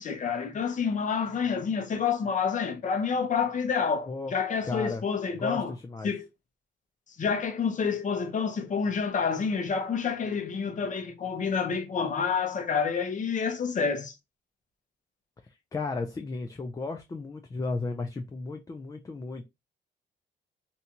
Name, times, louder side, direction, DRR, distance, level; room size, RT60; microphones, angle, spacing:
voice 1, 0.0-5.7 6.0-6.3 7.2-14.2, left 6 dB, 40° left, 0.7 m, -28 dB
voice 2, 4.6-5.0 5.4-6.1 15.4-19.4, left 3 dB, 15° left, 0.4 m, -34 dB
2.7 x 2.2 x 2.8 m
cardioid pair, 90°, 20 cm